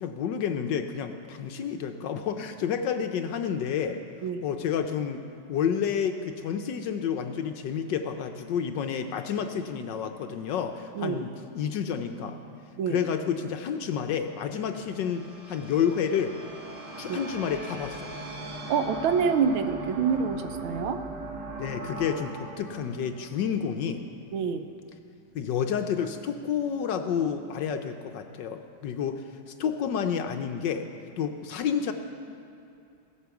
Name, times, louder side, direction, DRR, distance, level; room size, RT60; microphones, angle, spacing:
voice 1, 0.0-4.0 4.4-5.2 5.5-12.4 12.9-16.4 17.0-18.2 21.6-24.0 25.3-30.9 31.2-31.9, left 7 dB, 70° left, 6 dB, 1.2 m, -30 dB
sound 1, 13.9-24.3, right 2 dB, 60° right, 2.2 m, -40 dB
voice 2, 18.7-21.0 24.3-24.7, right 6 dB, 80° right, 9 dB, 1.6 m, -26 dB
16.5 x 8.3 x 7.0 m, 2.6 s
omnidirectional pair, 2.3 m